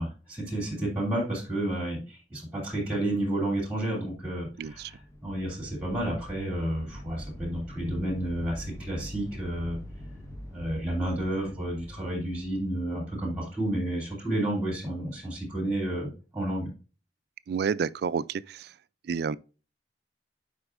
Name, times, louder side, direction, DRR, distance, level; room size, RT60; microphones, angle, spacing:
voice 1, 0.0-4.9 5.2-9.8 10.5-16.7, right 1 dB, 10° right, 2.8 m, -31 dB
sound 1, 4.2-13.8, left 1 dB, 15° left, 1.0 m, -44 dB
voice 2, 4.6-4.9 17.5-18.7 19.0-19.4, right 6 dB, 60° right, 0.3 m, -30 dB
7.9 x 5.1 x 2.5 m
head